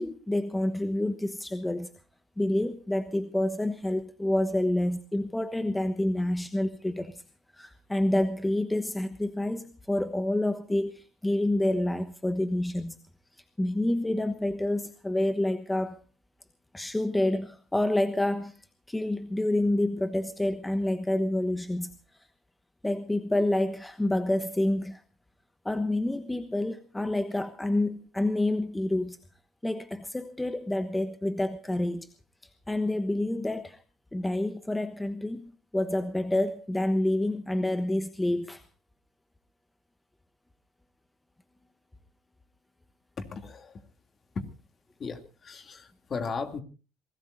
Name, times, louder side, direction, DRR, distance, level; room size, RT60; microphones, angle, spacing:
voice 1, 0.0-1.9 2.4-7.2 7.5-13.0 13.6-16.0 16.7-18.6 18.9-21.9 22.8-25.0 25.6-29.2 29.6-32.1 32.7-33.8 34.1-38.6, left 1 dB, 10° left, 1.2 m, -28 dB
voice 2, 43.2-43.8 44.3-44.5 45.0-46.6, left 4 dB, 40° left, 2.7 m, -36 dB
27.0 x 17.5 x 2.7 m
supercardioid pair, 80°, 0 cm